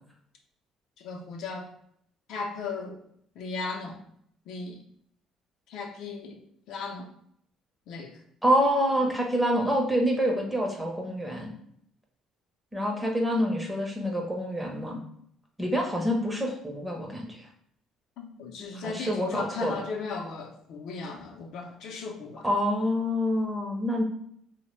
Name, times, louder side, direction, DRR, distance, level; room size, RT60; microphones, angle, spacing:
voice 1, 1.0-1.7 2.3-3.0 3.4-4.0 4.5-4.8 5.7-6.4 6.7-7.1 7.9-8.2 18.2-22.5, left 4 dB, 70° left, 2 dB, 0.5 m, -36 dB
voice 2, 8.4-11.5 12.7-15.0 15.6-17.5 18.7-19.8 22.4-24.0, equal, 5° right, 1 dB, 0.6 m, -27 dB
3.1 x 2.1 x 3.1 m, 0.69 s
cardioid pair, 110°, 0 cm